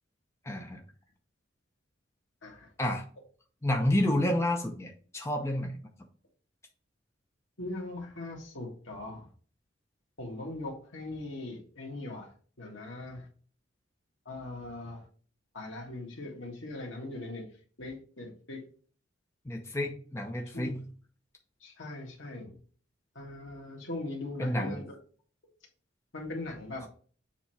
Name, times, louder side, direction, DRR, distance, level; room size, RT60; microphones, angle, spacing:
voice 1, 0.4-0.8 2.8-3.0 3.6-5.8 19.5-20.8 24.4-24.8, left 1 dB, 15° left, 2 dB, 0.6 m, -29 dB
voice 2, 7.6-9.3 10.2-12.3 12.6-13.2 14.3-15.0 15.5-17.4 17.8-18.6 20.5-20.8 21.6-22.5 23.2-25.0 26.1-26.8, left 2 dB, 75° left, -1 dB, 1.8 m, -40 dB
7.1 x 3.0 x 4.4 m, 0.42 s
head